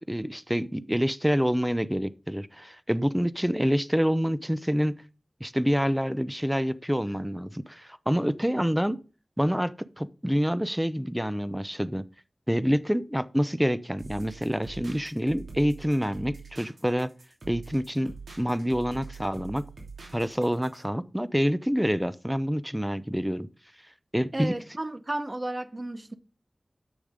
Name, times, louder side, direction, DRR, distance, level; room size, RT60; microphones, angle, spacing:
voice 1, 0.1-5.0 5.4-9.0 9.4-12.0 12.5-17.1 17.5-19.6 20.1-23.5 24.1-24.5, equal, 5° right, 0.6 m, -27 dB
sound 1, 14.0-20.8, right 4 dB, 85° right, 3.0 m, -45 dB
voice 2, 24.3-26.1, right 1 dB, 35° right, 0.9 m, -33 dB
8.1 x 6.6 x 5.1 m
wide cardioid pair, 50°, 0 cm